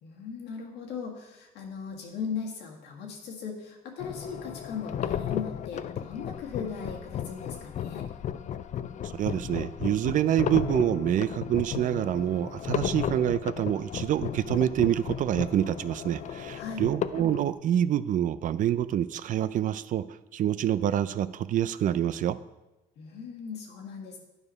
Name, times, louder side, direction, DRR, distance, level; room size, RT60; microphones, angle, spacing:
voice 1, 0.0-8.1 16.5-16.8 23.0-24.2, left 6 dB, 85° left, 0 dB, 1.8 m, -38 dB
sound 1, 4.0-17.5, left 9 dB, 45° left, 0.4 m, -34 dB
voice 2, 9.0-20.0 20.3-22.4, right 11 dB, 50° right, 15 dB, 0.4 m, -26 dB
9.8 x 5.0 x 5.3 m, 1.0 s
cardioid pair, 110°, 17 cm